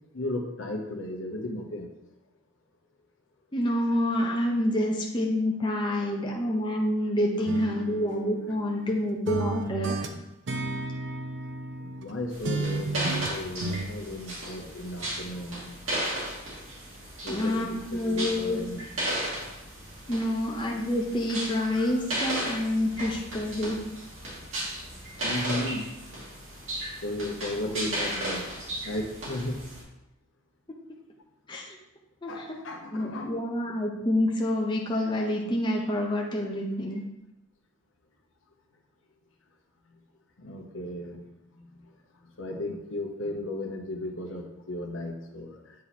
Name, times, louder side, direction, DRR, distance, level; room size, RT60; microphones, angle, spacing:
voice 1, 0.1-1.9 11.8-15.7 17.2-18.8 25.2-25.8 27.0-28.5 28.8-29.6 32.3-33.3 40.4-41.2 41.5-41.9 42.4-45.7, left 1 dB, 70° left, 2 dB, 0.9 m, -35 dB
voice 2, 3.5-10.0 17.3-18.6 20.1-23.8 27.7-27.8 30.7-30.8 31.5-31.8 32.2-32.6 32.9-37.0, left 1 dB, 20° left, -1 dB, 0.7 m, -28 dB
sound 1, 7.5-8.9 9.3-12.1 12.4-13.9, right 3 dB, 60° right, 0.5 m, -33 dB
sound 2, 12.3-29.8, right 1 dB, 75° right, 2.2 m, -35 dB
8.4 x 3.0 x 4.1 m, 0.90 s
head